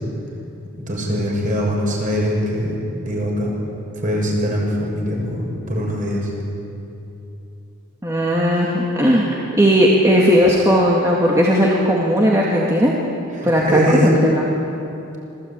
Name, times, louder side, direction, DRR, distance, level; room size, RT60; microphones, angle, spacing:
voice 1, 0.9-3.5 3.9-6.3 13.3-14.2, equal, 40° right, -1 dB, 6.6 m, -22 dB
voice 2, 8.0-12.9 13.4-14.4, equal, 15° right, -4 dB, 2.2 m, -16 dB
26.0 x 18.0 x 9.0 m, 2.9 s
head